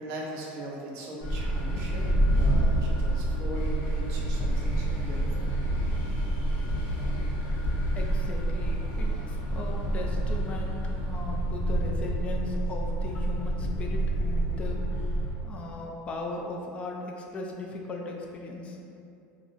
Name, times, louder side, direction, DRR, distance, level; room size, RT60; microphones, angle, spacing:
voice 1, 0.0-2.1 2.4-5.6, right 1 dB, 60° right, -2 dB, 0.6 m, -40 dB
sound 1, 1.2-15.3, right 1 dB, 65° left, 0.7 m, -28 dB
voice 2, 7.9-15.2 15.4-18.8, left 2 dB, 25° left, 0 dB, 0.3 m, -38 dB
2.4 x 2.1 x 3.7 m, 2.6 s
supercardioid pair, 135°, 5 cm